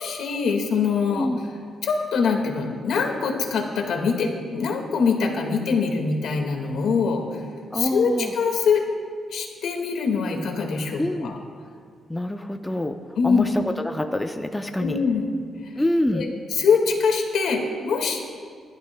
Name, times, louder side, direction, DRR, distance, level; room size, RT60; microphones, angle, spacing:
voice 1, 0.0-1.3 1.8-7.2 7.7-8.8 9.3-11.4 13.2-13.4 14.8-15.3 16.1-18.2, left 5 dB, 75° left, 2 dB, 1.8 m, -23 dB
voice 2, 7.7-8.3 11.0-11.3 12.1-13.0 13.2-15.0 15.8-16.3, left 1 dB, 10° left, 5 dB, 0.5 m, -26 dB
28.0 x 12.0 x 2.3 m, 2.1 s
wide cardioid pair, 155°, 0 cm